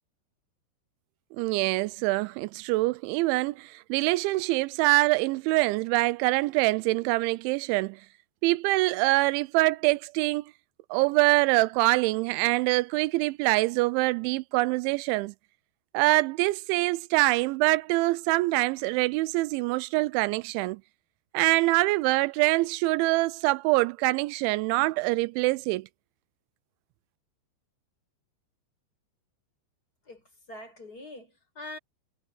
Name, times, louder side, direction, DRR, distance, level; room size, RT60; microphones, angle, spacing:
voice 1, 1.4-8.0 8.4-10.5 10.9-15.3 15.9-20.8 21.3-25.9, right 21 dB, 85° right, 2.9 m, -24 dB
voice 2, 30.1-31.8, left 1 dB, 20° left, 6.1 m, -44 dB
omnidirectional pair, 5.3 m